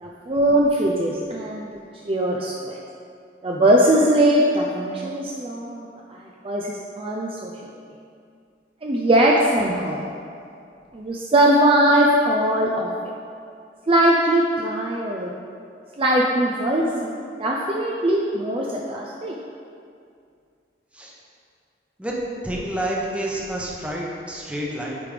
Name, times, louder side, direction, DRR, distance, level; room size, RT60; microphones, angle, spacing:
voice 1, 0.0-1.7 2.0-2.8 3.4-7.5 8.8-10.0 10.9-12.9 13.9-15.3 16.0-19.4, right 1 dB, 30° right, -2 dB, 0.5 m, -20 dB
voice 2, 22.4-25.0, right 1 dB, 5° right, -4 dB, 0.9 m, -29 dB
8.6 x 4.9 x 3.4 m, 2.4 s
head